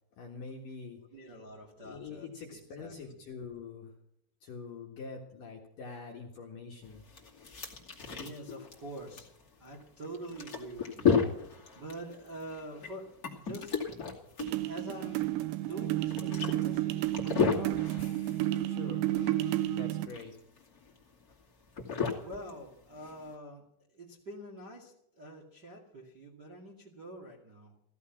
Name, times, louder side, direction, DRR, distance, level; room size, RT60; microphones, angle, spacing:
voice 1, 0.2-1.0 1.8-3.9 4.4-7.0 18.6-19.1 19.7-20.3, left 4 dB, 60° left, 0 dB, 2.5 m, -45 dB
voice 2, 1.1-3.2 7.8-9.3 9.6-13.8 14.6-15.4 15.7-17.9 22.2-23.6 23.9-27.7, right 1 dB, 35° right, -2 dB, 1.7 m, -46 dB
sound 1, 6.8-23.3, left 6 dB, 35° left, 1.5 m, -35 dB
sound 2, 14.4-20.1, right 15 dB, 80° right, 2.6 m, -31 dB
15.5 x 15.0 x 5.9 m, 0.74 s
omnidirectional pair, 5.8 m